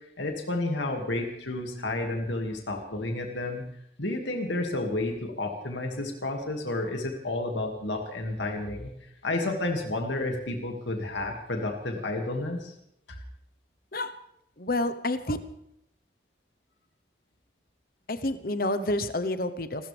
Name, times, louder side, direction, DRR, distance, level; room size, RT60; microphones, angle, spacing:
voice 1, 0.2-3.6 4.0-8.9 9.2-12.7, left 2 dB, 85° left, 2 dB, 2.3 m, -31 dB
voice 2, 14.6-15.4 18.1-19.9, left 1 dB, 50° left, 11 dB, 1.1 m, -29 dB
26.5 x 14.0 x 3.5 m, 0.77 s
head